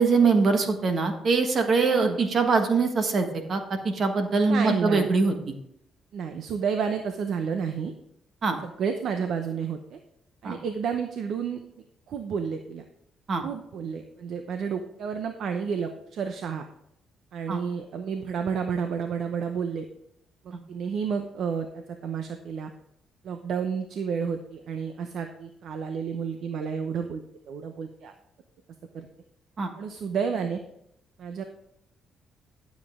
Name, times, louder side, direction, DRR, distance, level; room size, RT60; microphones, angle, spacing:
voice 1, 0.0-5.5 8.4-8.6 10.4-10.6 13.3-13.4 17.5-17.6 29.6-29.7, right 4 dB, 50° right, 6 dB, 1.4 m, -23 dB
voice 2, 4.5-5.1 6.1-7.9 8.6-10.0 10.4-11.6 12.1-12.8 13.4-16.6 17.3-19.9 20.4-22.7 23.2-27.2 27.5-28.1 28.9-29.1 29.8-30.6 31.2-31.4, right 6 dB, 70° right, 6 dB, 0.8 m, -31 dB
12.0 x 7.3 x 3.7 m, 0.77 s
cardioid pair, 90°, 0 cm